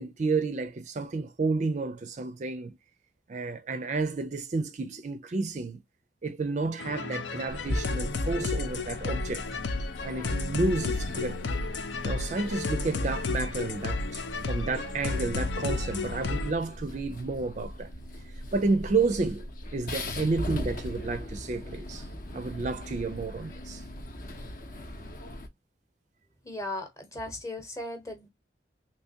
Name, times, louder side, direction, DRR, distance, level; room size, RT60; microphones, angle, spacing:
voice 1, 0.0-2.8 3.3-5.8 6.2-9.5 10.0-11.5 11.7-17.9 18.5-22.1 22.3-23.8, right 3 dB, 40° right, 0.4 m, -31 dB
sound 1, 6.8-16.5, left 3 dB, 85° left, 0.6 m, -32 dB
sound 2, 7.5-25.5, left 1 dB, 50° left, 0.8 m, -39 dB
voice 2, 26.4-28.3, left 1 dB, 15° left, 0.9 m, -37 dB
3.4 x 2.9 x 2.7 m
head